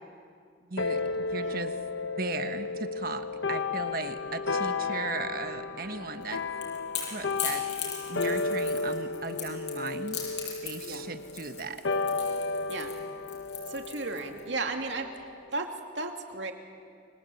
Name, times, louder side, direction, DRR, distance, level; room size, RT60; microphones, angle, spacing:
voice 1, 0.7-1.7 2.0-6.4 7.1-7.6 8.1-10.2 10.6-11.8, right 3 dB, 55° right, 8 dB, 1.5 m, -37 dB
sound 1, 0.8-15.5, left 4 dB, 90° left, 1.1 m, -33 dB
Crackle / Crack, 6.2-14.4, left 8 dB, 70° left, 7.8 m, -38 dB
voice 2, 13.7-16.5, right 3 dB, 85° right, 4 dB, 2.6 m, -35 dB
29.5 x 23.0 x 8.5 m, 2.2 s
head